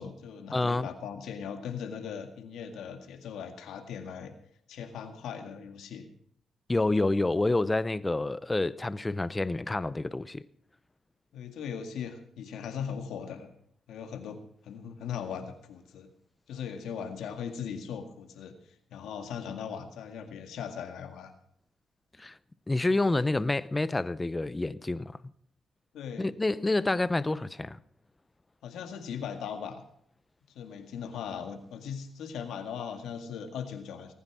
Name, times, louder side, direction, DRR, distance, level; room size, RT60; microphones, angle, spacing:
voice 1, 0.0-4.3 4.7-6.1 11.3-13.5 13.9-16.1 16.5-18.5 18.9-21.3 25.9-26.3 28.6-29.8 30.5-34.1, left 7 dB, 85° left, 2.0 m, -39 dB
voice 2, 0.5-0.9 6.7-10.4 22.2-22.3 22.7-25.2 26.2-27.8, left 2 dB, 20° left, 0.7 m, -28 dB
18.5 x 9.6 x 6.1 m
cardioid pair, 70°, 0 cm